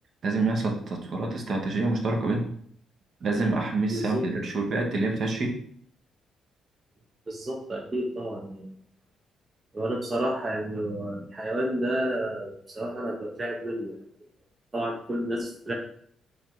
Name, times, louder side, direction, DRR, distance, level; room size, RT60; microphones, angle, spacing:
voice 1, 0.2-2.5 3.2-5.6, right 3 dB, 55° right, 2 dB, 0.9 m, -27 dB
voice 2, 3.9-4.3 7.3-8.8 9.7-14.0 14.7-15.7, right 1 dB, 30° right, 0 dB, 0.6 m, -30 dB
3.4 x 2.5 x 4.5 m, 0.63 s
cardioid pair, 90°, 0 cm